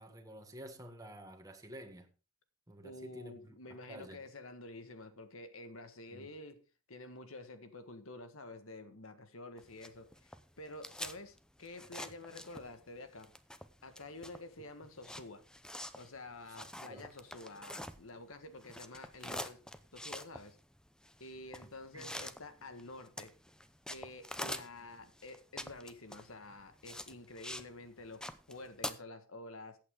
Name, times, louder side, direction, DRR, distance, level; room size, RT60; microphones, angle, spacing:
voice 1, 0.0-2.1 2.7-4.2 6.1-6.3 16.9-17.1 21.9-22.1, right 1 dB, 15° right, 1.7 m, -51 dB
voice 2, 2.8-6.6 6.9-13.3 13.8-15.4 15.9-19.6 19.9-20.6 21.2-23.3 23.9-29.8, left 2 dB, 80° left, 1.6 m, -49 dB
sound 1, 9.6-12.9 13.2-18.3 18.6-27.7 28.0-28.9, left 1 dB, 5° left, 0.6 m, -45 dB
15.0 x 8.6 x 3.7 m
head